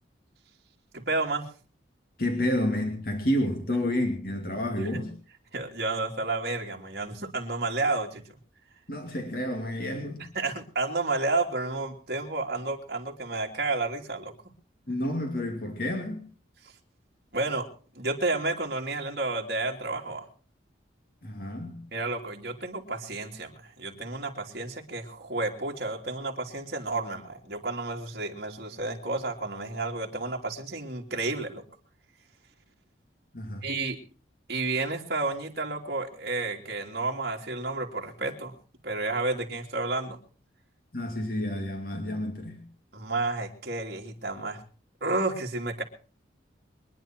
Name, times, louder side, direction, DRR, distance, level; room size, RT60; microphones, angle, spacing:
voice 1, 0.9-1.5 4.9-5.0 5.5-8.2 10.3-14.3 17.3-17.7 17.9-20.3 21.9-31.6 33.6-34.0 34.5-38.5 38.8-40.2 42.9-44.6 45.0-45.8, right 3 dB, 55° right, 0 dB, 3.0 m, -31 dB
voice 2, 2.2-5.1 8.9-10.3 14.9-16.3 21.2-21.9 33.3-33.7 40.9-42.6, left 1 dB, 50° left, 3 dB, 2.6 m, -30 dB
24.0 x 10.5 x 4.6 m, 0.40 s
head